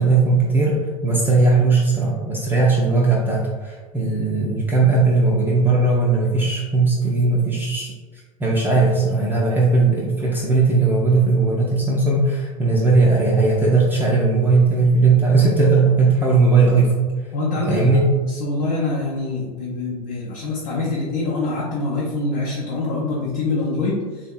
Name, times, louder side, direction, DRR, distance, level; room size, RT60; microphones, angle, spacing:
voice 1, 0.0-7.9 8.4-16.9 17.7-18.0, right 3 dB, 10° right, -5 dB, 0.4 m, -18 dB
voice 2, 17.3-24.3, left 2 dB, 60° left, -5 dB, 0.7 m, -25 dB
3.4 x 2.7 x 2.4 m, 1.4 s
figure-of-eight pair, 80°, 19 cm